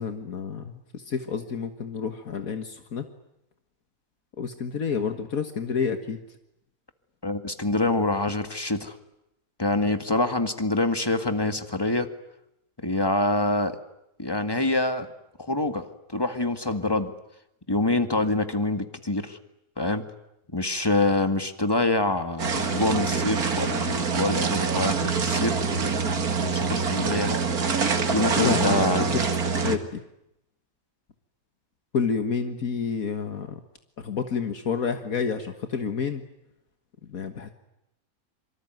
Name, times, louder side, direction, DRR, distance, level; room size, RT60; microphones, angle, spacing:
voice 1, 0.0-3.0 4.4-6.2 28.4-30.0 31.9-33.6 34.0-36.2 37.1-37.5, left 6 dB, 70° left, 7 dB, 1.9 m, -29 dB
voice 2, 7.2-8.9 9.6-12.1 12.8-13.7 14.2-15.1 15.4-15.8 16.1-17.1 17.7-19.4 19.8-20.0 20.5-25.5 26.4-27.4 28.1-29.1, left 2 dB, 15° left, 8 dB, 1.9 m, -25 dB
sound 1, 22.4-29.8, right 5 dB, 85° right, 2.5 m, -25 dB
26.0 x 24.5 x 9.3 m, 0.84 s
omnidirectional pair, 1.6 m